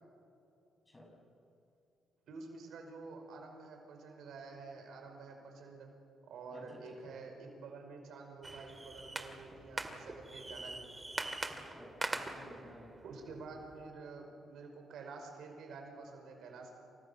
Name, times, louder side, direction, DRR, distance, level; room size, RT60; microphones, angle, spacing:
voice 1, 2.3-5.9 6.3-10.9 13.0-16.7, right 4 dB, 75° right, 3 dB, 5.5 m, -49 dB
voice 2, 6.5-7.2 11.5-12.9, left 1 dB, 20° left, 1 dB, 7.5 m, -55 dB
sound 1, 8.4-13.9, right 2 dB, 15° right, 2.3 m, -43 dB
29.5 x 27.5 x 7.1 m, 2.7 s
cardioid pair, 95°, 0 cm